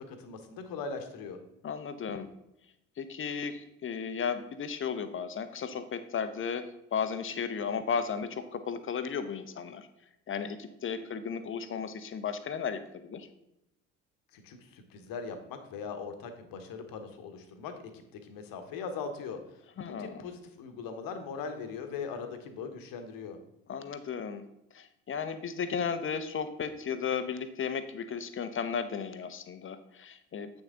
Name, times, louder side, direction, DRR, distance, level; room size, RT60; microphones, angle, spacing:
voice 1, 0.0-1.4 14.3-23.4, left 5 dB, 55° left, 7 dB, 1.3 m, -40 dB
voice 2, 1.6-2.3 3.0-9.9 10.3-13.3 19.8-20.2 23.7-24.5 24.7-30.6, left 6 dB, 30° left, 10 dB, 0.9 m, -35 dB
8.2 x 6.6 x 3.7 m, 0.85 s
figure-of-eight pair, 55°, 42 cm